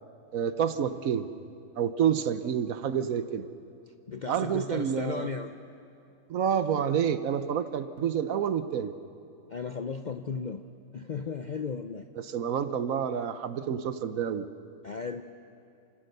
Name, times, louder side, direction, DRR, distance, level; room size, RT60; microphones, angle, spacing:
voice 1, 0.3-1.3 1.8-3.4 4.3-5.3 6.3-8.9 12.2-14.5, right 8 dB, 70° right, 12 dB, 1.2 m, -28 dB
voice 2, 4.1-5.5 9.5-10.6 10.9-12.1 14.8-15.2, left 5 dB, 50° left, 8 dB, 0.5 m, -35 dB
28.0 x 17.5 x 6.7 m, 2.6 s
omnidirectional pair, 1.6 m